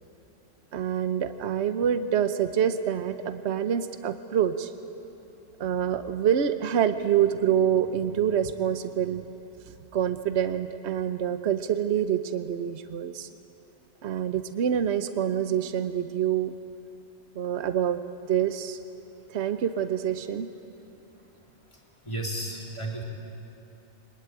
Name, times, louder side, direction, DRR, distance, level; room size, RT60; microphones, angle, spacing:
voice 1, 0.7-4.7 5.6-9.2 9.9-13.3 14.0-16.5 17.4-18.0 18.3-18.8 19.3-20.5, right 9 dB, 70° right, 10 dB, 1.1 m, -26 dB
voice 2, 21.7-23.0, right 1 dB, 25° left, 0 dB, 3.1 m, -34 dB
23.0 x 21.0 x 9.0 m, 2.9 s
omnidirectional pair, 1.2 m